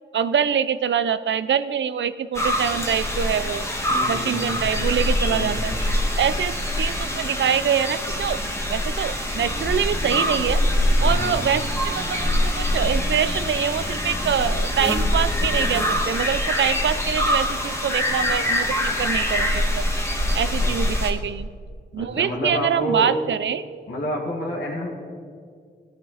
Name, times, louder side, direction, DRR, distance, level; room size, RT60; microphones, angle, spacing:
voice 1, 0.1-3.7 4.1-5.7 6.2-8.4 8.7-10.6 11.0-19.8 20.3-21.5 21.9-23.6, right 8 dB, 80° right, 14 dB, 0.5 m, -24 dB
sound 1, 2.3-21.1, left 1 dB, 15° left, 1.7 m, -24 dB
voice 2, 3.9-4.7 5.3-5.7 10.9-11.5 20.6-20.7 22.0-23.1 23.9-24.9, left 1 dB, 70° left, -4 dB, 2.1 m, -29 dB
sound 2, 9.4-16.0, left 1 dB, 35° left, 1.0 m, -37 dB
18.0 x 9.5 x 4.1 m, 2.1 s
cardioid pair, 70°, 19 cm